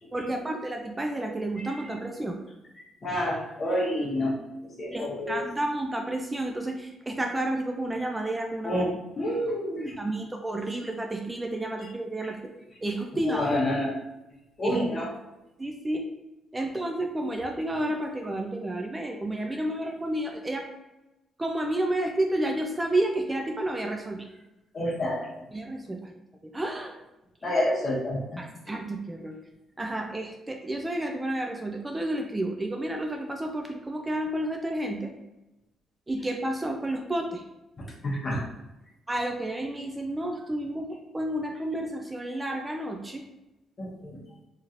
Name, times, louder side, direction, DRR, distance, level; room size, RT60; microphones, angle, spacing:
voice 1, 0.1-2.4 4.9-8.8 9.9-12.4 12.8-13.5 14.6-14.8 15.6-16.1 16.5-20.7 21.4-24.3 25.5-26.1 26.4-27.0 28.4-29.4 29.8-35.1 36.1-37.4 39.1-40.9 41.1-43.2, right 1 dB, 15° right, 2 dB, 0.3 m, -31 dB
voice 2, 1.6-1.9 2.8-4.3 4.8-5.4 8.6-10.2 12.2-12.3 13.1-14.0 14.6-15.1 24.7-25.4 27.4-28.4 38.0-38.5 43.8-44.2, left 1 dB, 40° left, -3 dB, 1.0 m, -29 dB
3.1 x 2.7 x 2.5 m, 0.96 s
cardioid pair, 90°, 0 cm